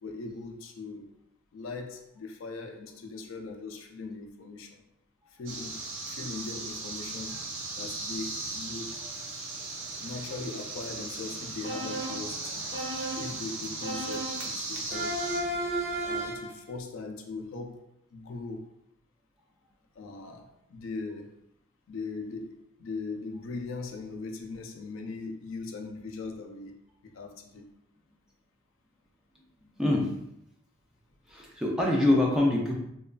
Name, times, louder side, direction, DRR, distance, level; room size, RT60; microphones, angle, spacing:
voice 1, 0.0-1.1 1.5-4.8 5.3-7.4 7.7-9.0 10.0-12.7 13.1-15.2 16.0-18.7 20.0-21.4 21.9-26.8 27.0-27.7, left 3 dB, 75° left, 3 dB, 0.4 m, -40 dB
sound 1, 5.5-15.4, right 3 dB, 70° right, 0.5 m, -37 dB
sound 2, 11.6-12.3 12.7-13.4 13.8-14.5 14.9-16.5, right 1 dB, 25° right, 0.9 m, -33 dB
voice 2, 29.8-30.1 31.3-32.7, left 1 dB, 5° right, -3 dB, 0.4 m, -24 dB
2.9 x 2.3 x 2.3 m, 0.78 s
head